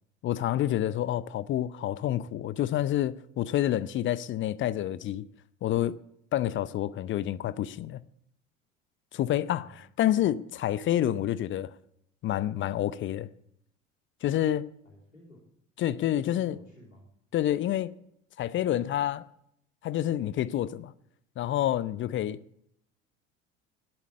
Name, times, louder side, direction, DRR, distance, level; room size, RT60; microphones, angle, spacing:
voice 1, 0.2-5.2 5.6-6.0 6.3-8.0 9.1-11.7 12.2-13.3 14.2-14.7 15.8-16.6 17.3-17.9 18.4-19.3 19.8-20.9 21.4-22.4, left 12 dB, 30° left, 0.6 m, -28 dB
voice 2, 14.8-15.5 16.1-17.1, left 1 dB, 90° left, 3.1 m, -53 dB
12.5 x 11.0 x 8.4 m
figure-of-eight pair, 65°, 38 cm